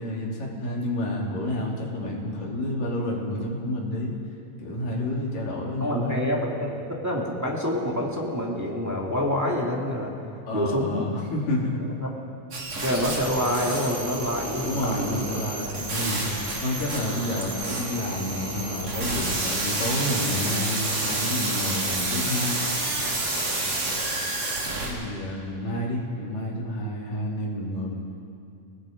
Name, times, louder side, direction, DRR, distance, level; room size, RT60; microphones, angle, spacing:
voice 1, 0.0-4.1 4.6-6.3 10.5-11.9 14.6-16.3 16.6-22.5 23.7-23.8 24.8-27.9, left 1 dB, 70° left, -3 dB, 4.7 m, -29 dB
voice 2, 5.8-10.1 10.5-11.1 12.0-12.1 12.8-15.2, left 1 dB, 5° right, -3 dB, 1.7 m, -27 dB
sound 1, 12.5-24.9, right 2 dB, 50° right, 4.5 m, -29 dB
28.0 x 18.0 x 5.3 m, 2.6 s
omnidirectional pair, 4.1 m